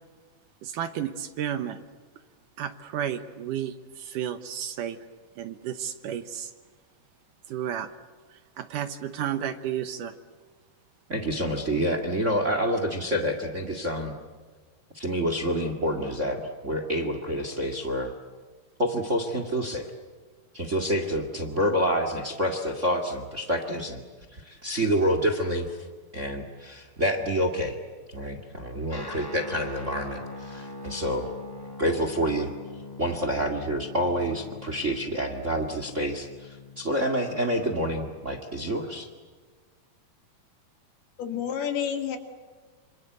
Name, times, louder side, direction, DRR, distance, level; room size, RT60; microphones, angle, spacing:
voice 1, 0.6-1.8 2.6-5.0 5.4-6.5 7.5-7.9 8.6-10.1, right 9 dB, 70° right, 10 dB, 2.3 m, -32 dB
voice 2, 11.1-14.1 14.9-18.1 18.8-19.9 20.5-24.0 24.3-25.8 26.1-27.8 28.1-31.3 31.8-32.5 33.0-39.1, equal, 30° right, 7 dB, 1.5 m, -28 dB
Guitar, 28.9-38.7, left 3 dB, 30° left, 0.4 m, -43 dB
voice 3, 41.2-42.2, left 8 dB, 80° left, 6 dB, 4.2 m, -29 dB
27.0 x 27.0 x 8.0 m, 1.5 s
omnidirectional pair, 4.4 m